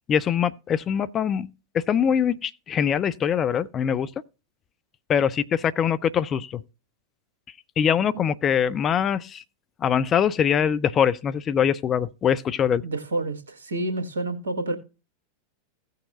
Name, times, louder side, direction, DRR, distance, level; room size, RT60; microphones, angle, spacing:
voice 1, 0.1-1.5 1.7-4.1 5.1-6.6 7.8-9.4 9.8-12.8, left 8 dB, 25° left, 0.4 m, -23 dB
voice 2, 12.8-14.8, right 2 dB, 70° right, 1.6 m, -29 dB
16.5 x 6.6 x 2.5 m
figure-of-eight pair, 90°, 0 cm